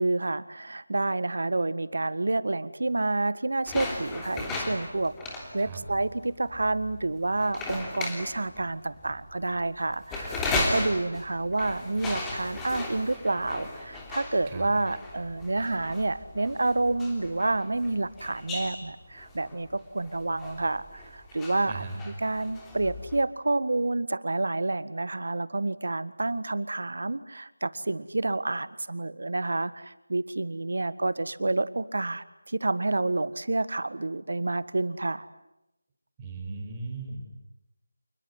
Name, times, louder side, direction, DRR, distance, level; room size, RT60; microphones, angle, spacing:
voice 1, 0.0-35.3, right 2 dB, 65° right, 15 dB, 1.6 m, -29 dB
sound 1, 3.7-23.2, left 2 dB, 5° left, 3.1 m, -36 dB
voice 2, 21.7-22.0 36.2-37.2, right 3 dB, 15° right, 1 dB, 5.2 m, -37 dB
28.0 x 21.0 x 9.8 m, 0.88 s
figure-of-eight pair, 170°, 0 cm